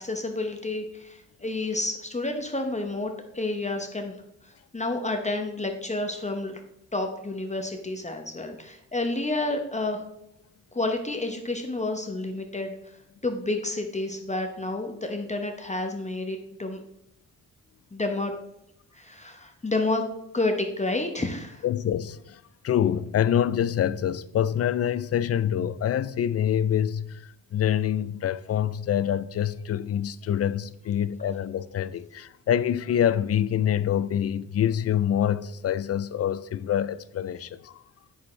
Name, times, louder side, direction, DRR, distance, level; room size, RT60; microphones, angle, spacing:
voice 1, 0.0-4.1 4.4-6.6 6.9-10.0 10.7-12.7 13.2-16.8 17.9-18.3 18.9-20.0 20.3-21.6, left 2 dB, 20° left, 0.8 m, -30 dB
voice 2, 21.6-22.2 22.6-27.2 27.5-37.7, left 10 dB, 45° left, 0.4 m, -26 dB
8.0 x 6.3 x 3.2 m
cardioid pair, 85°, 35 cm